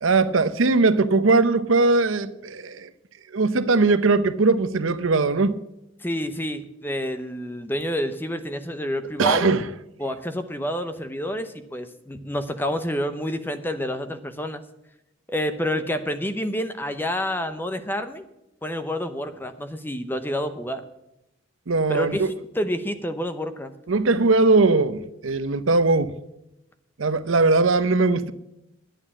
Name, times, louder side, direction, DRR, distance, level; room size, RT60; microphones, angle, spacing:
voice 1, 0.0-2.9 3.3-5.6 9.2-9.7 21.7-22.3 23.9-26.1 27.0-28.3, right 3 dB, 75° right, 0.7 m, -20 dB
voice 2, 6.0-9.5 10.0-14.6 15.3-18.3 18.6-20.8 21.9-23.7, equal, 10° left, 0.7 m, -28 dB
11.0 x 9.1 x 7.3 m
head